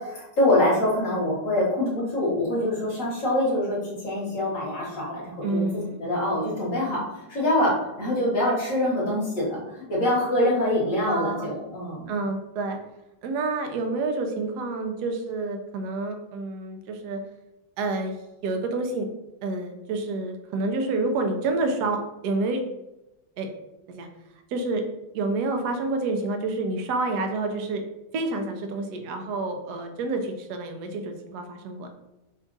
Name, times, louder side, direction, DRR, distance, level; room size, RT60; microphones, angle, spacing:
voice 1, 0.0-12.1, left 1 dB, 45° left, -5 dB, 1.3 m, -25 dB
voice 2, 5.4-6.1 11.0-11.6 12.1-12.8 13.2-17.2 17.8-18.2 18.4-19.1 19.4-22.6 23.4-23.5 23.9-24.1 24.5-24.8 25.1-27.8 28.1-31.9, right 3 dB, 70° right, 5 dB, 1.0 m, -28 dB
5.1 x 2.4 x 3.8 m, 0.96 s
omnidirectional pair, 2.3 m